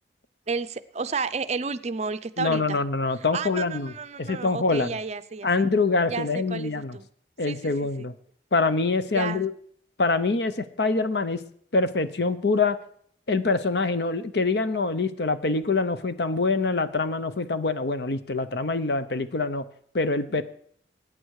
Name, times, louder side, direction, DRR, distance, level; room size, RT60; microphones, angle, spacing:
voice 1, 0.5-2.8 3.3-5.7 6.0-7.1 7.4-7.7 8.0-8.1 9.1-9.4, right 4 dB, 40° right, 13 dB, 0.5 m, -32 dB
voice 2, 2.4-3.9 4.2-5.0 5.4-7.0 7.4-8.1 8.5-9.5 10.0-11.4 11.7-12.8 13.3-19.6 19.9-20.4, left 3 dB, 60° left, 12 dB, 0.8 m, -25 dB
20.5 x 9.1 x 4.8 m, 0.63 s
head